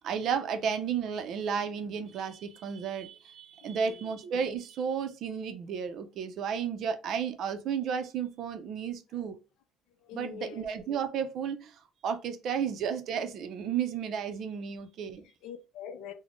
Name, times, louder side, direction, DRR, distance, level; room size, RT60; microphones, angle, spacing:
voice 1, 0.0-9.4 10.1-15.2, right 7 dB, 45° right, 0.4 m, -33 dB
voice 2, 3.6-4.1 10.0-10.7 15.0-16.1, left 8 dB, 70° left, 0.5 m, -44 dB
4.0 x 2.0 x 3.0 m
cardioid pair, 175°, 0 cm